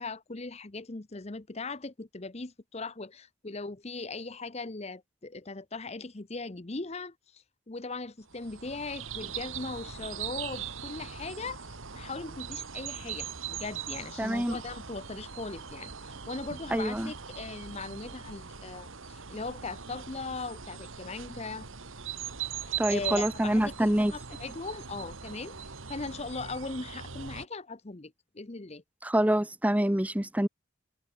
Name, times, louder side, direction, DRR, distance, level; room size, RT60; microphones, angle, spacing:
voice 1, 0.0-21.7 22.6-28.8, left 3 dB, 30° left, 0.8 m, -39 dB
sound 1, 8.3-27.5, right 8 dB, 75° right, 1.9 m, -40 dB
voice 2, 14.2-14.6 16.7-17.1 22.8-24.1 29.0-30.5, right 1 dB, 5° right, 0.7 m, -26 dB
head